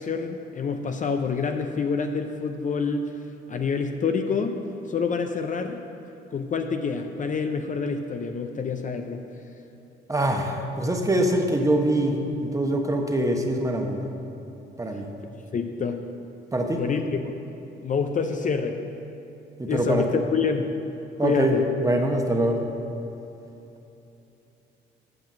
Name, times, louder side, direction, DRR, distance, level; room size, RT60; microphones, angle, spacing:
voice 1, 0.0-3.1 3.5-4.6 4.9-5.8 6.3-9.2 15.5-16.0 16.8-17.3 17.8-18.8 19.7-20.8 21.2-21.6, left 5 dB, 40° left, 6 dB, 0.5 m, -27 dB
voice 2, 10.1-14.0 14.8-15.1 16.5-16.8 19.6-20.2 21.2-21.6 21.8-22.6, right 1 dB, 15° right, 2 dB, 1.0 m, -24 dB
8.0 x 5.7 x 7.5 m, 3.0 s
cardioid pair, 90°, 20 cm